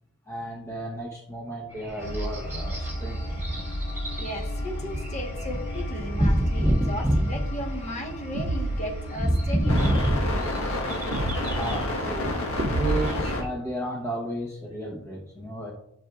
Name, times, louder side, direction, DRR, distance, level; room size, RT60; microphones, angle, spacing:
voice 1, 0.3-3.5 10.7-15.7, right 1 dB, 15° left, -3 dB, 0.9 m, -34 dB
sound 1, 1.7-13.5, equal, 10° right, 1.7 m, -28 dB
sound 2, 2.0-13.4, left 1 dB, 80° left, 1.4 m, -32 dB
voice 2, 4.2-10.1, equal, 35° left, 1 dB, 1.3 m, -36 dB
sound 3, 8.3-8.9 9.7-10.2 11.1-11.6 12.6-13.3, right 2 dB, 50° right, 0.5 m, -28 dB
11.5 x 6.0 x 2.4 m, 0.77 s
head